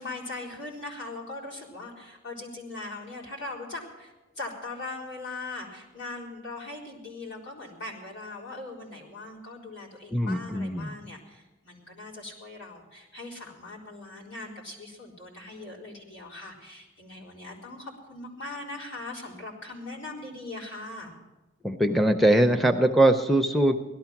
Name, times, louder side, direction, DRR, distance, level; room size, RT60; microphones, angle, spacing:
voice 1, 0.0-21.1, left 2 dB, 70° left, -4 dB, 4.2 m, -40 dB
voice 2, 10.1-10.9 21.6-23.7, right 1 dB, ahead, 3 dB, 0.5 m, -22 dB
17.0 x 12.5 x 5.9 m, 1.1 s
head